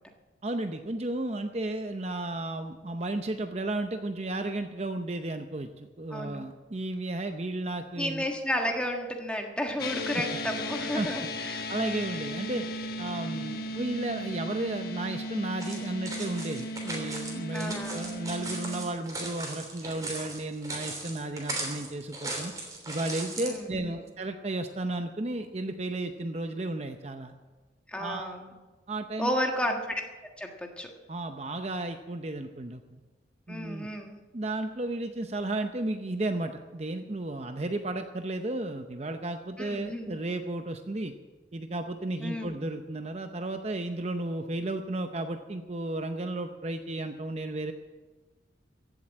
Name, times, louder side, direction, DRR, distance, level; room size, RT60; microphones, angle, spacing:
voice 1, 0.4-8.2 10.9-11.3 11.7-12.7 13.0-22.5 22.9-27.3 28.0-28.3 28.9-29.3 31.1-32.8 33.5-33.9 34.3-41.1 41.5-47.7, right 2 dB, 35° right, 7 dB, 0.7 m, -33 dB
voice 2, 6.1-6.4 8.0-11.6 13.3-13.7 17.5-18.1 23.4-24.0 27.9-28.5 29.2-30.0 30.4-30.9 33.5-34.2 39.6-40.2 42.2-42.5, equal, 5° left, 2 dB, 1.5 m, -32 dB
sound 1, 9.8-18.9, left 1 dB, 55° left, 1.3 m, -36 dB
sound 2, 15.6-23.6, right 2 dB, 20° right, 3.2 m, -38 dB
15.5 x 7.8 x 8.8 m, 1.2 s
head